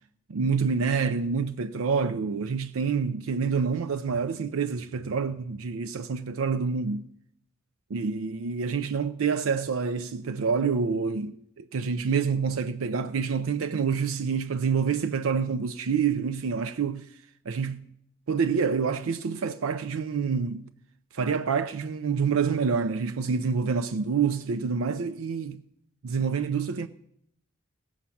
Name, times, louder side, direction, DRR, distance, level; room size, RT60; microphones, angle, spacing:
voice 1, 0.3-7.1 7.9-17.1 17.5-17.9 18.3-20.7 21.1-25.6 26.0-26.9, right 5 dB, 80° right, 0.5 m, -27 dB
17.0 x 7.2 x 5.8 m
head